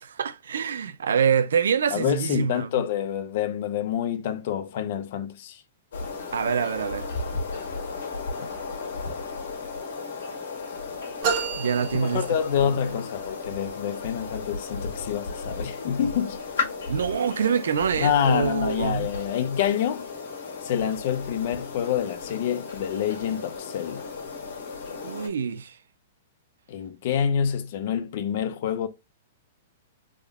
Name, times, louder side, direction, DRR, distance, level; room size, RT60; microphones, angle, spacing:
voice 1, 0.0-2.7 6.3-7.1 11.6-12.3 12.6-13.0 16.9-19.1 25.0-25.8, right 7 dB, 90° right, 0.4 m, -25 dB
voice 2, 1.9-5.6 12.0-16.4 18.0-20.1 20.6-24.1 26.7-28.9, left 9 dB, 50° left, 0.5 m, -27 dB
sound 1, 5.9-25.3, left 4 dB, 80° left, 1.5 m, -35 dB
sound 2, 11.2-12.9, right 6 dB, 45° right, 1.0 m, -30 dB
3.6 x 2.1 x 3.5 m
hypercardioid pair, 155°, 0 cm